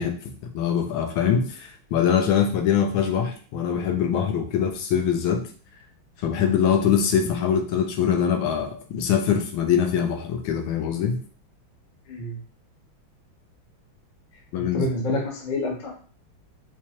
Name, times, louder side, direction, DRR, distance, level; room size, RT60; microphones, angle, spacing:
voice 1, 0.0-5.4 6.2-11.2 14.5-14.8, left 8 dB, 85° left, 4 dB, 1.4 m, -23 dB
voice 2, 12.1-12.4 14.6-15.9, left 2 dB, 55° left, -1 dB, 0.5 m, -28 dB
4.5 x 2.3 x 2.9 m, 0.41 s
omnidirectional pair, 2.2 m